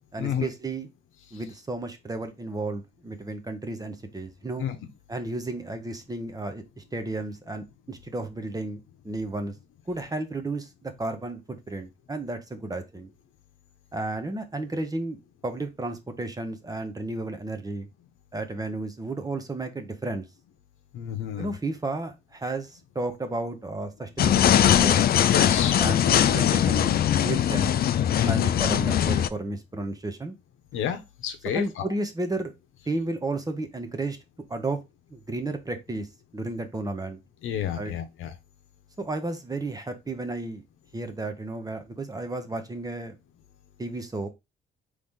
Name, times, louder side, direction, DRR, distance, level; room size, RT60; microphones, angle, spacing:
voice 1, 0.1-0.9 1.3-4.7 5.1-9.5 9.9-13.1 13.9-15.2 15.4-17.9 18.3-20.3 21.4-25.1 25.8-26.9 27.2-27.7 28.3-30.4 31.5-32.5 32.9-34.2 34.5-34.8 35.1-36.1 36.3-37.2 37.8-37.9 39.0-40.6 40.9-43.2 43.8-44.3, right 2 dB, 20° right, 0.9 m, -33 dB
voice 2, 20.9-21.5 25.2-25.8 28.2-28.5 30.7-31.8 37.4-38.3, left 9 dB, 85° left, 0.9 m, -30 dB
sound 1, 24.2-29.3, left 10 dB, 50° left, 0.4 m, -21 dB
4.0 x 3.2 x 3.6 m
cardioid pair, 90°, 20 cm